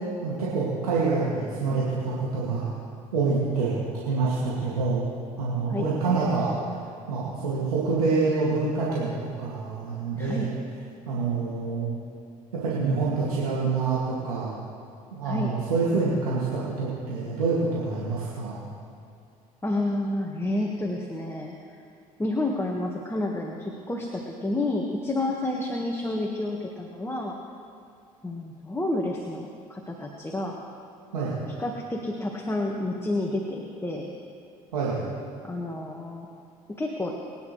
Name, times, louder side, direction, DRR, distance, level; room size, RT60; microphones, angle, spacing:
voice 1, 0.2-2.7 3.1-5.0 5.4-6.5 7.1-10.5 11.1-11.9 12.5-14.5 15.1-18.6 31.1-31.3 34.7-35.0, right 4 dB, 85° right, -7 dB, 2.3 m, -26 dB
voice 2, 10.1-10.5 15.2-15.5 19.6-21.8 22.2-27.3 28.2-30.6 31.6-34.1 35.4-36.3 36.8-37.1, left 2 dB, 15° left, 0 dB, 1.6 m, -30 dB
23.5 x 9.9 x 3.3 m, 2.4 s
hypercardioid pair, 60°, 19 cm